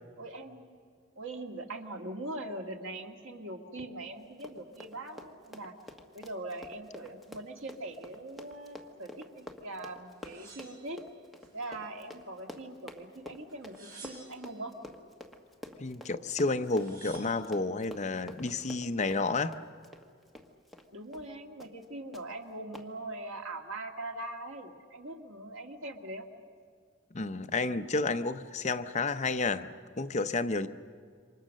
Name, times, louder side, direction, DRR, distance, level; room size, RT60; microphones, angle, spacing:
voice 1, 0.2-0.7 1.2-5.7 6.1-11.0 11.5-14.7 20.9-26.3, right 2 dB, 85° right, 3 dB, 2.0 m, -41 dB
Run, 4.2-20.9 21.1-21.3 21.6-21.9 22.1-22.2 22.7-22.9, left 1 dB, ahead, 1.4 m, -49 dB
sound 1, 10.2-11.5 12.0-12.8 13.5-14.6 16.1-16.2 16.5-17.5 18.1-18.6, right 3 dB, 45° right, 7.0 m, -53 dB
voice 2, 15.8-19.6 27.1-29.7 30.0-30.7, left 3 dB, 35° left, 9 dB, 0.7 m, -31 dB
28.0 x 25.0 x 6.5 m, 2.1 s
head